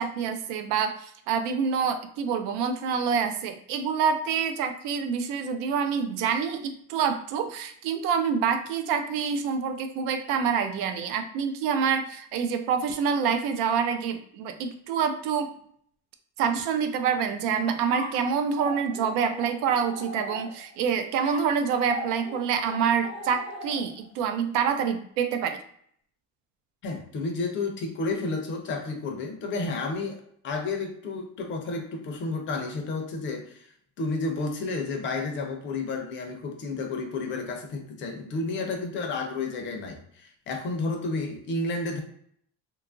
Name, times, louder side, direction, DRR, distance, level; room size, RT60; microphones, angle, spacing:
voice 1, 0.0-15.5 16.4-25.6, right 6 dB, 90° right, 8 dB, 0.5 m, -27 dB
sound 1, 17.9-20.8 21.2-24.1, equal, 20° right, 0.5 m, -39 dB
voice 2, 26.8-30.2 30.4-33.7 34.0-42.0, left 3 dB, 35° left, 4 dB, 0.4 m, -31 dB
2.8 x 2.3 x 2.4 m, 0.64 s
cardioid pair, 165°, 32 cm